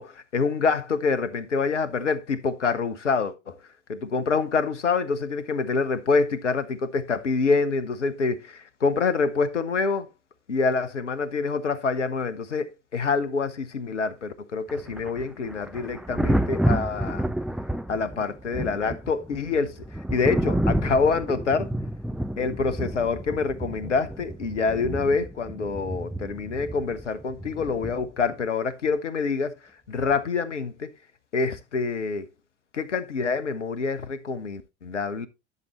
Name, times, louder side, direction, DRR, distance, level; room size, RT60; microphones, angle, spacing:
voice 1, 0.0-3.5 3.9-10.1 10.5-17.3 17.9-19.8 20.1-21.7 22.4-29.6 29.9-30.9 31.3-32.3 32.7-35.3, left 4 dB, 85° left, 0.9 m, -26 dB
Thunder, 14.7-28.3 30.0-30.2, right 1 dB, ahead, 0.7 m, -30 dB
11.0 x 6.7 x 3.1 m
figure-of-eight pair, 70°, 35 cm